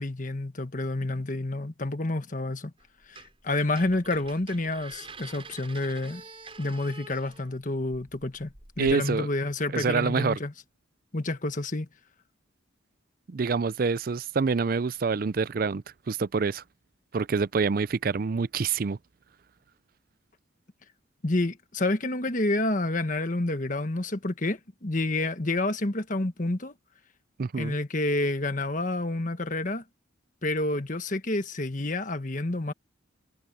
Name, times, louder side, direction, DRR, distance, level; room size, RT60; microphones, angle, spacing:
voice 1, 0.0-2.7 3.1-6.2 6.6-10.5 11.1-11.9 21.2-26.7 27.6-29.8 30.4-32.7, left 2 dB, 40° left, 1.4 m, -29 dB
sound 1, 2.8-3.4 3.7-8.9, right 3 dB, 30° right, 5.1 m, -47 dB
voice 2, 8.8-9.3 9.7-10.4 13.3-16.6 17.1-19.0 27.4-27.8, right 5 dB, 45° right, 0.4 m, -26 dB
head